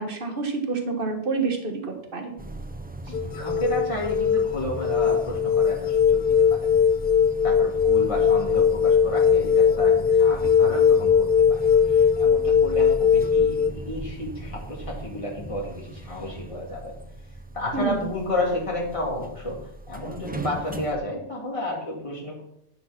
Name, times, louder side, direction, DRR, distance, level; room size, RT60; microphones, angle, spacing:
voice 1, 0.0-2.4 17.7-18.1, right 4 dB, 45° right, 4 dB, 1.8 m, -28 dB
sound 1, 2.4-21.0, right 1 dB, 15° right, 0.3 m, -38 dB
sound 2, 3.1-13.7, left 7 dB, 60° left, 0.7 m, -20 dB
voice 2, 3.3-6.7 7.4-16.9 17.5-19.6 19.9-22.4, left 1 dB, 25° left, -3 dB, 2.7 m, -31 dB
11.0 x 6.2 x 6.0 m, 0.75 s
omnidirectional pair, 1.3 m